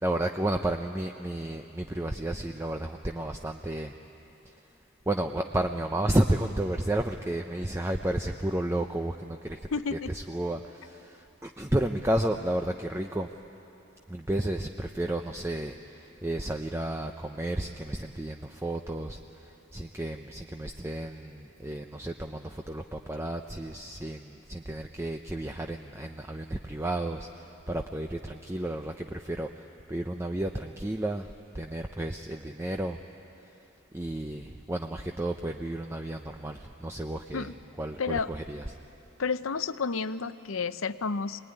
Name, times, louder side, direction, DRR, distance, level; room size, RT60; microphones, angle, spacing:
voice 1, 0.0-3.9 4.5-4.6 5.1-13.3 14.1-33.0 33.9-38.6, right 1 dB, 10° right, 4 dB, 0.6 m, -32 dB
voice 2, 9.7-10.1 37.3-37.5 38.0-38.3 39.2-41.4, left 5 dB, 75° left, 13 dB, 0.7 m, -31 dB
25.0 x 20.0 x 9.9 m, 3.0 s
head